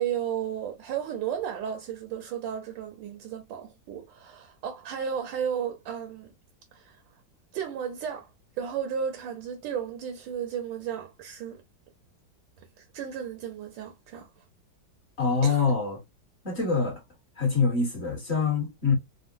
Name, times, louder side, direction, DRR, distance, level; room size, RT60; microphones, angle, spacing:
voice 1, 0.0-6.3 6.7-7.0 7.5-8.3 8.6-11.6 12.6-14.3 15.4-15.7, right 8 dB, 80° right, 1.3 m, -34 dB
voice 2, 15.2-16.0 16.4-17.0 17.4-18.9, left 5 dB, 40° left, 1.3 m, -25 dB
3.6 x 2.1 x 2.5 m
omnidirectional pair, 2.1 m